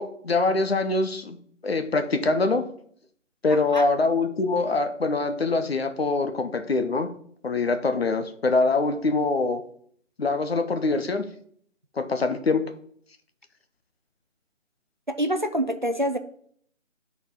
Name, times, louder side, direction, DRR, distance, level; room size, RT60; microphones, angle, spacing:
voice 1, 0.0-1.4 1.6-2.7 3.4-7.1 7.4-9.6 10.2-11.3 12.0-12.7, left 3 dB, 50° left, 8 dB, 0.8 m, -24 dB
voice 2, 15.1-16.2, equal, 40° right, 8 dB, 0.4 m, -26 dB
11.5 x 4.1 x 3.6 m, 0.63 s
figure-of-eight pair, 160°, 38 cm